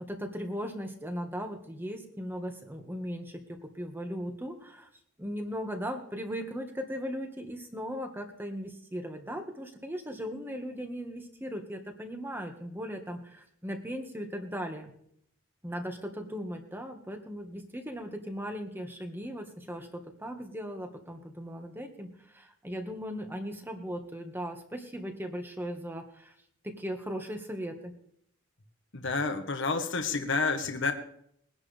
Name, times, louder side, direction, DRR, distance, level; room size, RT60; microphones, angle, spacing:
voice 1, 0.0-4.9 5.2-14.9 15.6-22.1 22.3-26.3 26.6-27.9, equal, 10° right, 4 dB, 1.8 m, -38 dB
voice 2, 28.9-30.9, left 4 dB, 65° left, 6 dB, 1.5 m, -29 dB
22.0 x 11.0 x 3.5 m, 0.69 s
head